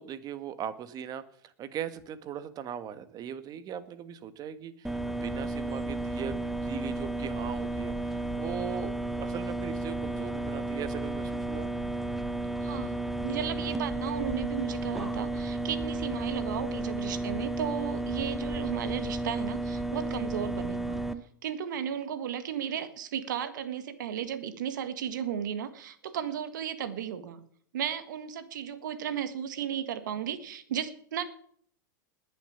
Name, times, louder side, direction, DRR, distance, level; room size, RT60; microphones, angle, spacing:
voice 1, 0.0-11.7 17.1-17.6, right 8 dB, 40° right, 12 dB, 1.7 m, -39 dB
sound 1, 4.8-21.1, right 2 dB, ahead, 1.1 m, -33 dB
voice 2, 12.6-21.0 21.4-27.4 27.7-31.2, right 9 dB, 70° right, 11 dB, 1.9 m, -35 dB
20.5 x 7.2 x 7.3 m, 0.62 s
hypercardioid pair, 95°, 10 cm